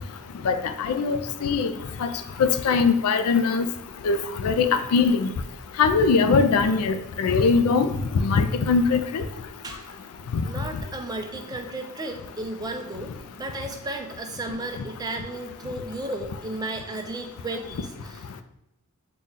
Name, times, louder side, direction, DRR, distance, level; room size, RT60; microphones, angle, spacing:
voice 1, 0.4-1.7 2.0-2.1 2.4-3.7 4.0-4.2 4.4-5.3 5.8-7.9 8.1-9.2 10.3-10.5, left 5 dB, 80° left, 9 dB, 0.4 m, -21 dB
voice 2, 10.4-18.4, right 2 dB, 15° right, 4 dB, 0.3 m, -34 dB
4.0 x 2.2 x 3.6 m, 0.83 s
head